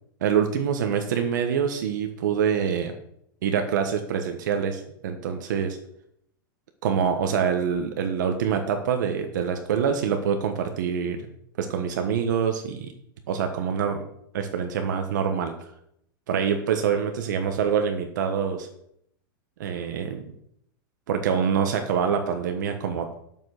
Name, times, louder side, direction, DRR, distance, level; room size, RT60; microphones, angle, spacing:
voice 1, 0.2-2.9 3.4-5.8 6.8-11.3 11.6-12.9 13.3-14.0 14.3-15.5 16.3-18.7 19.6-20.3 21.1-23.1, right 7 dB, 55° right, 5 dB, 1.3 m, -25 dB
8.5 x 7.2 x 6.5 m, 0.73 s
supercardioid pair, 175°, 12 cm